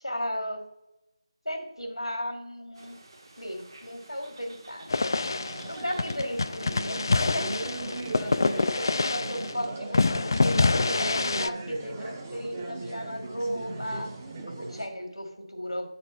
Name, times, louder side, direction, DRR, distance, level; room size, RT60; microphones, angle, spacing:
voice 1, 0.0-0.6 1.4-3.0 3.4-5.2 5.7-14.1 14.5-15.9, equal, 90° left, 4 dB, 2.0 m, -35 dB
sound 1, 2.7-9.5, right 2 dB, 50° right, 1.2 m, -52 dB
sound 2, 4.9-9.6 9.9-11.5, left 3 dB, 45° left, 0.3 m, -26 dB
sound 3, 5.2-14.9, right 2 dB, 20° right, 0.8 m, -38 dB
8.6 x 4.3 x 5.5 m, 0.90 s
figure-of-eight pair, 160°, 3 cm